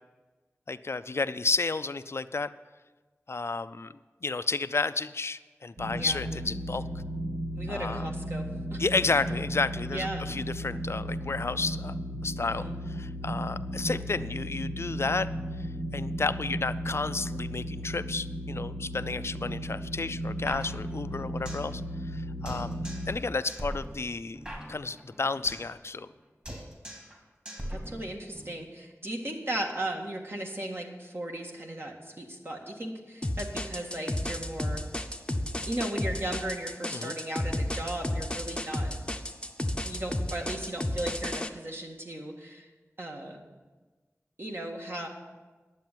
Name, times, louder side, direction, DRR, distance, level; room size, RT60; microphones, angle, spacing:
voice 1, 0.7-2.5 3.3-3.9 4.2-6.8 7.7-8.1 8.8-12.0 12.2-15.3 15.6-15.7 15.9-21.8 22.1-24.4 24.7-26.1 36.9-37.2, left 3 dB, 55° left, 13 dB, 0.4 m, -31 dB
sound 1, 5.8-23.1, equal, 75° right, 2.2 m, -35 dB
voice 2, 7.6-8.5 8.7-8.8 9.8-10.3 12.4-12.8 27.7-34.8 35.7-38.9 39.9-42.7 43.0-43.4 44.4-45.1, right 1 dB, 50° right, 1 dB, 1.8 m, -36 dB
sound 2, 20.5-21.7 22.0-22.1 22.5-23.2 23.5-25.7 26.0-26.2 26.5-27.2 27.5-28.5, equal, 25° right, 2.7 m, -41 dB
sound 3, 33.2-41.5, left 1 dB, 20° left, 0.7 m, -32 dB
10.5 x 7.7 x 7.4 m, 1.3 s
wide cardioid pair, 70°, 5 cm